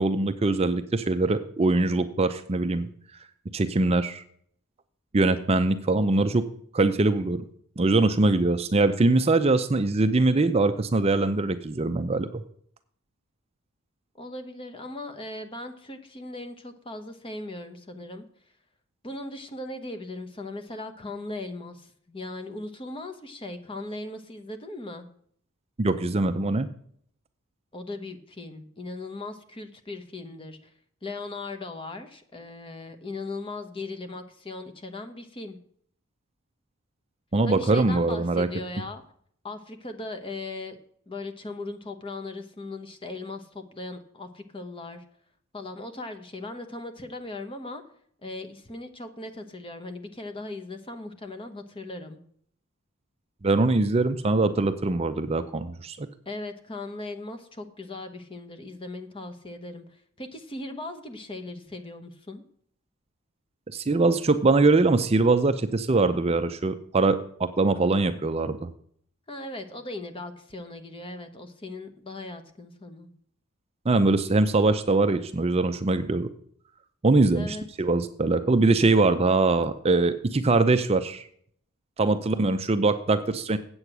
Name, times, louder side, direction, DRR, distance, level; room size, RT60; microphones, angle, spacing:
voice 1, 0.0-2.9 3.5-4.2 5.1-6.4 6.7-7.4 7.8-12.4 25.8-26.7 37.3-38.5 53.4-56.1 63.7-68.6 73.9-76.3 77.0-81.2 82.0-83.6, right 3 dB, 30° right, 10 dB, 0.5 m, -22 dB
voice 2, 14.2-18.2 19.0-25.1 27.7-30.7 31.0-35.6 37.4-39.0 39.4-40.8 41.1-45.0 45.5-47.8 48.2-52.2 56.3-62.4 69.3-73.1 77.3-77.7, left 2 dB, 25° left, 7 dB, 1.0 m, -38 dB
8.2 x 7.9 x 6.0 m, 0.62 s
head